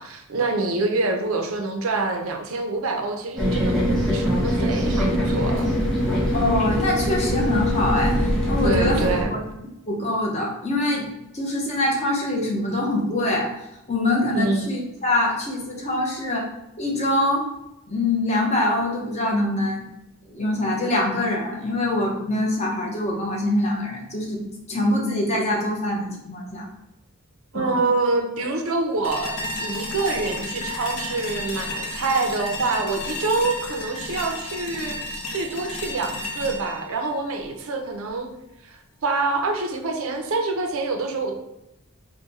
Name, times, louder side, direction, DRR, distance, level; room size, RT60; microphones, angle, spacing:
voice 1, 0.0-3.8 4.1-5.7 8.6-9.3 14.3-14.7 27.5-35.0 35.3-38.3 38.6-41.3, right 3 dB, 70° right, 4 dB, 0.5 m, -26 dB
sound 1, 3.4-9.2, equal, 5° left, 1.0 m, -22 dB
voice 2, 6.3-9.4 9.9-11.1 11.3-16.5 16.8-17.5 17.9-19.9 20.3-24.4 24.7-26.7 27.5-27.8, left 1 dB, 30° left, -2 dB, 0.8 m, -24 dB
sound 2, 29.0-38.1, left 2 dB, 70° left, 0.6 m, -33 dB
3.7 x 2.2 x 4.0 m, 0.86 s
head